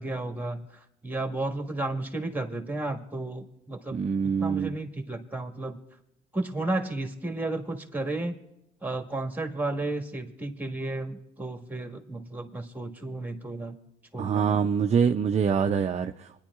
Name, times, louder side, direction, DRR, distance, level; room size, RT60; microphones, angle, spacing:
voice 1, 0.0-4.0 4.4-5.8 6.3-8.4 8.8-13.8 14.1-14.6, right 2 dB, 10° right, 4 dB, 1.6 m, -33 dB
voice 2, 3.9-4.8 14.2-16.4, right 6 dB, 30° right, 6 dB, 0.5 m, -25 dB
26.5 x 10.0 x 2.4 m, 0.88 s
supercardioid pair, 70°, 21 cm